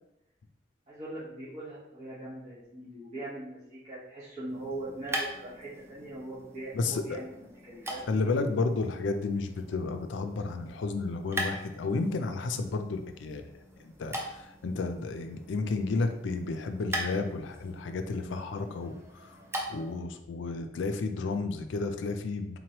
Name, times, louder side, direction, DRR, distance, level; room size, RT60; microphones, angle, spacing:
voice 1, 0.9-8.0, right 1 dB, 40° right, -12 dB, 1.3 m, -41 dB
sound 1, 4.4-20.0, right 1 dB, 15° right, 0.5 m, -41 dB
voice 2, 6.7-7.2 8.1-13.4 14.0-19.0 19.3-19.4 19.7-22.6, left 3 dB, 85° left, 7 dB, 0.4 m, -32 dB
3.8 x 3.0 x 2.9 m, 0.86 s
head